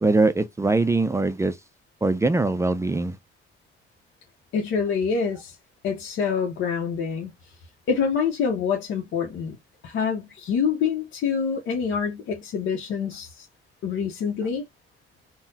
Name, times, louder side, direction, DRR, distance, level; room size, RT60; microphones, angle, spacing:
voice 1, 0.0-1.6 2.0-3.2, right 2 dB, 15° right, 0.3 m, -22 dB
voice 2, 4.5-5.6 5.8-7.3 7.9-9.6 9.8-13.5 13.8-14.6, left 6 dB, 80° left, 0.7 m, -26 dB
3.8 x 2.0 x 2.7 m
cardioid pair, 90°, 20 cm